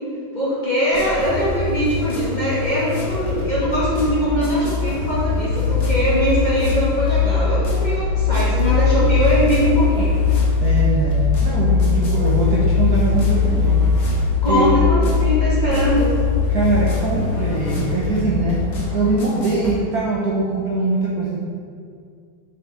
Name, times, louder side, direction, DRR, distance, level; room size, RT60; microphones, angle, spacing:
voice 1, 0.3-10.2 14.4-16.1, equal, 25° left, -9 dB, 1.7 m, -21 dB
sound 1, 0.9-19.7, left 2 dB, 40° left, 1.3 m, -27 dB
sound 2, 3.5-18.0, left 5 dB, 85° left, 2.3 m, -20 dB
voice 2, 10.6-13.9 14.5-14.7 16.5-18.7 18.9-21.4, right 2 dB, 60° right, -5 dB, 1.3 m, -22 dB
6.0 x 5.7 x 4.1 m, 2.3 s
omnidirectional pair, 2.1 m